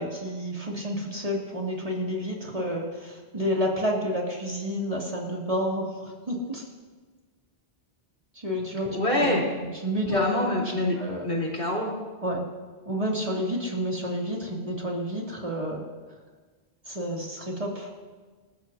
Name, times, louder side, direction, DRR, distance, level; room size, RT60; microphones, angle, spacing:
voice 1, 0.0-6.6 8.3-10.2 11.0-11.3 12.2-12.4 12.8-15.8 16.9-17.9, equal, 35° right, -3 dB, 2.8 m, -30 dB
voice 2, 8.9-9.5 10.1-11.0 11.2-11.9, left 1 dB, 60° left, -3 dB, 4.1 m, -25 dB
27.5 x 13.5 x 2.8 m, 1.4 s
omnidirectional pair, 1.0 m